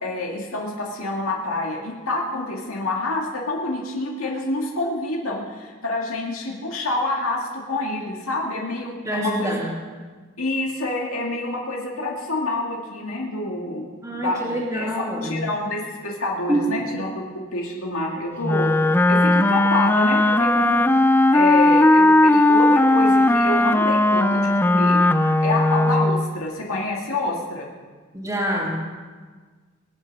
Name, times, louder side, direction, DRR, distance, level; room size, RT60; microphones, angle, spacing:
voice 1, 0.0-9.6 10.4-13.9 14.1-20.8 21.3-25.0 25.4-27.7, left 2 dB, 85° left, -1 dB, 2.1 m, -27 dB
voice 2, 9.0-9.8 14.0-15.4 16.5-16.8 28.1-28.8, right 1 dB, 15° right, -5 dB, 2.6 m, -26 dB
Wind instrument woodwind instrument, 18.4-26.3, left 2 dB, 10° left, 0.4 m, -17 dB
21.5 x 8.8 x 6.0 m, 1.4 s
head